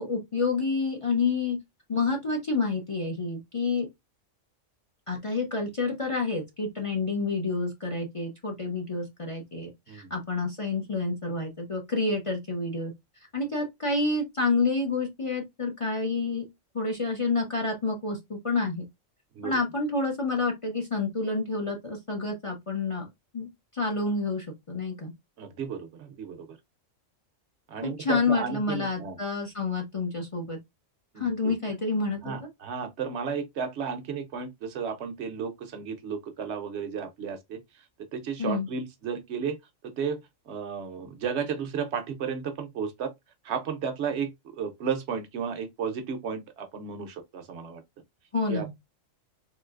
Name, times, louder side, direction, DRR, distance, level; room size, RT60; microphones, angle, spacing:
voice 1, 0.0-1.6 1.9-3.9 5.1-12.9 13.3-16.4 16.7-18.8 19.4-23.1 23.3-25.1 27.8-30.6 31.2-32.5 38.4-38.7 48.3-48.7, left 3 dB, 35° left, 0.5 m, -29 dB
voice 2, 25.4-26.5 27.7-29.2 31.1-31.5 32.2-37.6 38.1-39.6 39.8-40.2 40.5-43.1 43.4-47.8 48.5-48.7, right 6 dB, 65° right, 0.8 m, -33 dB
3.8 x 2.7 x 2.3 m
omnidirectional pair, 1.4 m